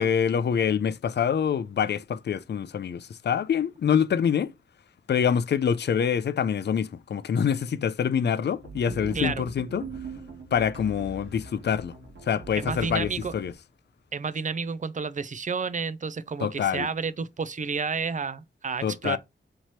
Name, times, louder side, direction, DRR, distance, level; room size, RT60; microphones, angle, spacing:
voice 1, 0.0-4.5 5.1-9.9 10.5-11.9 12.2-13.5 16.4-16.9 18.8-19.2, left 8 dB, 60° left, 0.4 m, -25 dB
sound 1, 8.5-13.5, right 3 dB, 80° right, 1.3 m, -41 dB
voice 2, 9.1-9.5 12.6-13.3 14.1-19.2, right 5 dB, 40° right, 0.4 m, -31 dB
4.5 x 2.9 x 2.9 m
wide cardioid pair, 80°, 19 cm